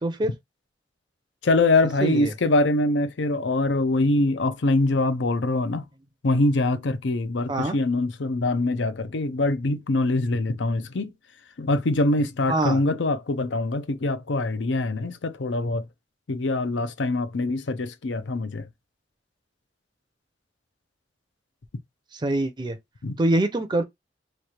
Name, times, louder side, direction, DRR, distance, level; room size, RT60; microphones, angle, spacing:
voice 1, 0.0-0.3 2.0-2.3 7.5-7.8 12.5-12.8 22.1-22.8 23.2-23.8, right 2 dB, 25° right, 0.5 m, -24 dB
voice 2, 1.4-5.8 6.2-11.1 11.6-15.8 16.3-18.7 23.0-23.2, left 2 dB, 85° left, 0.6 m, -24 dB
3.3 x 2.4 x 4.2 m
head